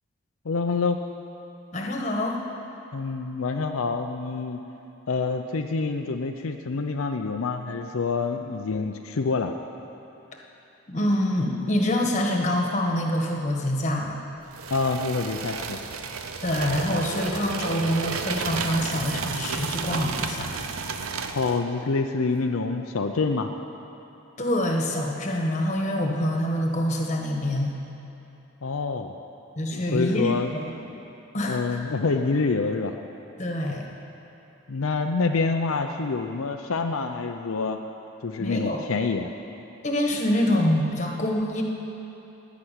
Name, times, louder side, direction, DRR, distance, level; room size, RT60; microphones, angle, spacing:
voice 1, 0.5-1.0 2.9-4.6 5.1-9.5 14.7-15.8 21.3-23.5 28.6-29.2 29.7-30.5 31.5-33.0 34.7-37.8 38.2-39.3, left 4 dB, 75° left, 4 dB, 0.6 m, -27 dB
voice 2, 1.7-2.4 10.9-14.2 16.4-20.5 24.4-27.8 29.6-31.0 31.3-31.8 33.4-33.9 38.4-38.8 39.8-41.6, left 1 dB, 35° left, 1 dB, 1.4 m, -26 dB
sound 1, 14.5-21.6, right 5 dB, 85° right, 0.8 m, -32 dB
16.5 x 6.1 x 10.0 m, 3.0 s
head